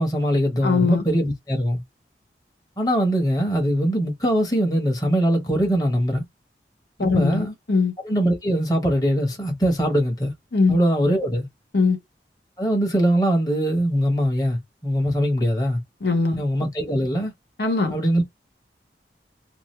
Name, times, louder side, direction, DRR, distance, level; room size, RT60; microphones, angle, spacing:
voice 1, 0.0-1.8 2.8-6.2 7.0-7.5 8.0-10.3 10.7-11.5 12.6-15.8 16.4-17.3 17.9-18.2, equal, 20° left, 0.9 m, -22 dB
voice 2, 0.6-1.0 7.0-7.9 10.5-10.8 11.7-12.0 16.0-16.4 17.6-17.9, left 4 dB, 70° left, 1.0 m, -21 dB
2.7 x 2.3 x 3.1 m
head